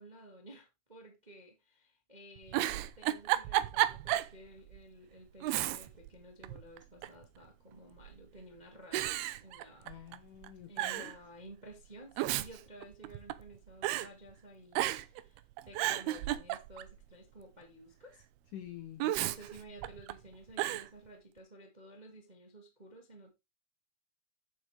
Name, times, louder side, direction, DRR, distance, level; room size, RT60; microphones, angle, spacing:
voice 1, 0.0-10.0 10.7-18.2 19.0-23.3, right 1 dB, 25° right, 1.0 m, -54 dB
Giggle, 2.4-4.4 4.7-4.8 5.4-6.1 6.4-7.2 8.0-8.4 8.9-10.2 10.4-10.5 10.8-11.2 12.0-13.5 13.8-14.1 14.7-15.2 15.6-17.0 19.0-20.1 20.6-20.9, right 15 dB, 75° right, 2.5 m, -33 dB
voice 2, 9.8-11.1 18.5-19.0, left 12 dB, 80° left, 1.8 m, -47 dB
12.0 x 7.5 x 3.4 m
omnidirectional pair, 4.8 m